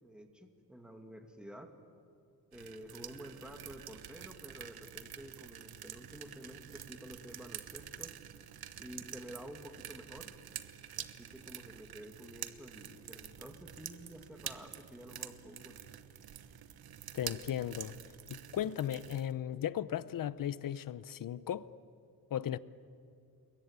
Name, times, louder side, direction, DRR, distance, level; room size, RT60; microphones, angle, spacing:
voice 1, 0.0-1.7 2.5-8.1 8.8-10.3 11.0-15.8, equal, ahead, 2.3 m, -50 dB
sound 1, 2.5-19.3, right 10 dB, 80° right, 1.3 m, -48 dB
voice 2, 17.1-18.0 18.3-21.7 22.3-22.6, left 10 dB, 60° left, 0.8 m, -36 dB
28.5 x 22.0 x 9.0 m
wide cardioid pair, 130°, 37 cm